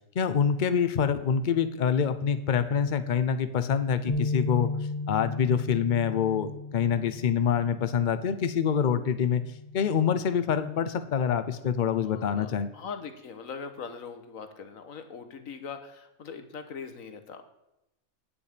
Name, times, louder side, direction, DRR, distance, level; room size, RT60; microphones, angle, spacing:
voice 1, 0.1-4.7 5.1-9.4 9.7-12.7, left 7 dB, 45° left, 11 dB, 0.7 m, -26 dB
sound 1, 4.1-10.3, left 3 dB, 30° left, 1.0 m, -36 dB
voice 2, 12.0-17.4, left 6 dB, 70° left, 8 dB, 1.5 m, -41 dB
10.0 x 8.3 x 5.0 m, 0.89 s
omnidirectional pair, 1.5 m